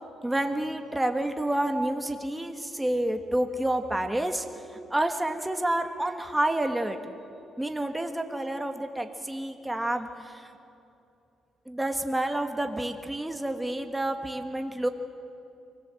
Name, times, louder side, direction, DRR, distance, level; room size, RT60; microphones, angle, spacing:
voice 1, 0.2-4.5 4.9-7.0 7.6-10.5 11.7-14.9, right 1 dB, 10° right, 5 dB, 1.7 m, -29 dB
23.5 x 18.0 x 7.8 m, 2.8 s
cardioid pair, 90°, 0 cm